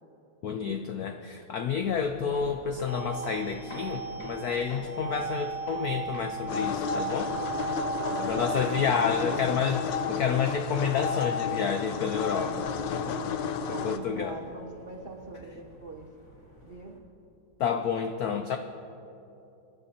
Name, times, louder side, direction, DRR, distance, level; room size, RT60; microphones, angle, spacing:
voice 1, 0.4-7.4 8.2-13.4 13.7-14.4 17.6-18.6, left 6 dB, 85° left, 6 dB, 0.8 m, -30 dB
sound 1, 1.7-17.0, equal, 30° left, 4.1 m, -49 dB
sound 2, 2.9-9.4, right 6 dB, 45° left, 2.7 m, -36 dB
sound 3, 6.5-14.0, left 6 dB, 70° left, 1.2 m, -32 dB
voice 2, 8.0-9.6 12.7-12.8 13.6-16.1 16.6-17.0, right 2 dB, 90° right, 1 dB, 0.5 m, -42 dB
24.5 x 11.5 x 2.8 m, 2.9 s
omnidirectional pair, 2.3 m